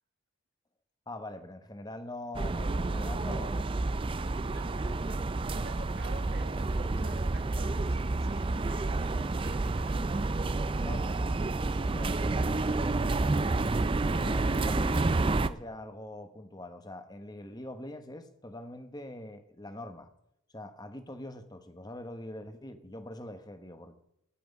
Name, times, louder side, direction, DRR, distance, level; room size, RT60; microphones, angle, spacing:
voice 1, 1.1-3.7 10.8-11.0 11.6-13.7 14.1-20.1 20.5-23.9, left 1 dB, 20° left, 9 dB, 1.1 m, -43 dB
sound 1, 2.3-15.5, right 2 dB, 25° right, 0.4 m, -29 dB
voice 2, 4.5-5.1 5.3-10.9, right 2 dB, 45° right, 6 dB, 1.4 m, -49 dB
14.0 x 6.1 x 9.2 m, 0.79 s
head